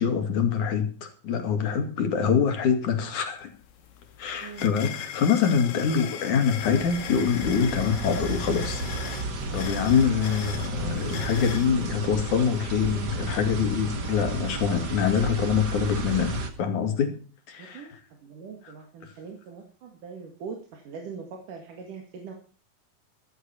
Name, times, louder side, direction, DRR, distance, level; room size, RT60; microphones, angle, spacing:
voice 1, 0.0-3.5 4.2-9.2 9.5-17.2 17.5-17.8, left 7 dB, 60° left, 3.5 m, -25 dB
sound 1, 3.1-3.2 3.6-11.7, left 9 dB, 75° left, 3.1 m, -39 dB
voice 2, 4.4-4.7 9.6-9.9 17.6-22.3, right 5 dB, 65° right, 3.5 m, -42 dB
sound 2, 6.6-16.5, right 3 dB, 40° right, 1.7 m, -33 dB
14.5 x 14.0 x 4.4 m
omnidirectional pair, 4.2 m